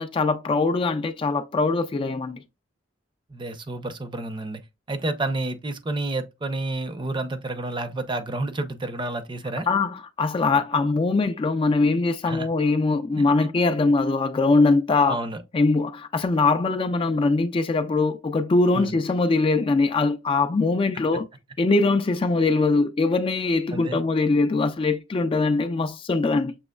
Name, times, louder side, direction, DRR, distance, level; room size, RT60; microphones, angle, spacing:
voice 1, 0.0-2.4 9.7-15.2 15.5-21.3 21.6-26.6, left 3 dB, 30° left, 0.3 m, -22 dB
voice 2, 3.3-4.6 4.9-9.7 12.3-12.5 15.1-15.4 18.8-18.9 23.7-24.0, right 2 dB, 25° right, 0.6 m, -30 dB
6.2 x 3.0 x 2.2 m
head